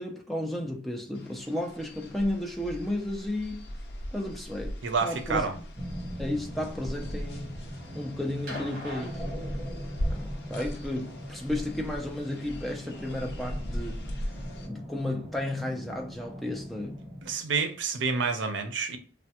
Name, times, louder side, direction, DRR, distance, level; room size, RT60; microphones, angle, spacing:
voice 1, 0.0-3.7 4.1-5.7 6.2-9.2 10.1-14.0 14.6-17.0, left 1 dB, ahead, 0.4 m, -33 dB
sound 1, 1.1-14.7, equal, 65° left, 0.6 m, -39 dB
voice 2, 4.8-5.5 17.2-19.0, right 5 dB, 80° right, 0.5 m, -28 dB
sound 2, 5.7-17.3, equal, 20° right, 1.0 m, -41 dB
sound 3, 8.5-10.1 11.4-11.5, left 1 dB, 55° right, 1.2 m, -41 dB
3.2 x 2.1 x 2.8 m
head